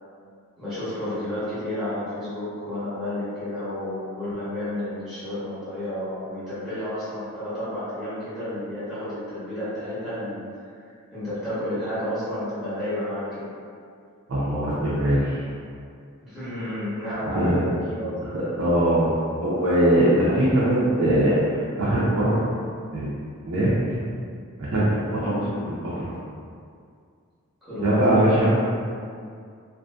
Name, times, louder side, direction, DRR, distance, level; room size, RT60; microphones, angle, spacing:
voice 1, 0.6-10.4 11.1-13.5 16.2-18.1 25.3-25.6 27.7-28.3, left 1 dB, 5° right, -15 dB, 0.9 m, -31 dB
voice 2, 14.3-15.4 17.2-17.6 18.3-19.1 19.4-22.4 22.9-23.2 23.5-23.7 24.7-26.1 27.8-28.5, right 1 dB, 65° right, -10 dB, 0.5 m, -21 dB
2.5 x 2.5 x 2.3 m, 2.3 s
head